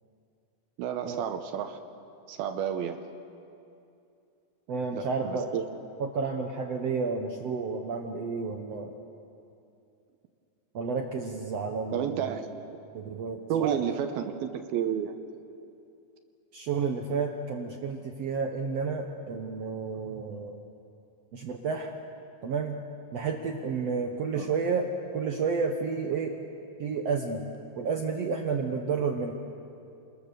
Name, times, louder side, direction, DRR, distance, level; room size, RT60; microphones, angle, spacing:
voice 1, 0.8-1.8 2.3-3.0 4.9-5.7 11.9-12.6 13.5-15.2 24.3-24.5, right 9 dB, 80° right, 7 dB, 2.8 m, -31 dB
voice 2, 4.7-5.5 6.0-8.9 10.7-12.4 12.9-13.8 16.5-20.6 21.3-21.9 22.4-22.8 23.1-26.3 26.8-27.4 27.7-29.3, right 5 dB, 65° right, 3 dB, 1.7 m, -31 dB
29.5 x 21.5 x 6.8 m, 2.7 s
omnidirectional pair, 4.3 m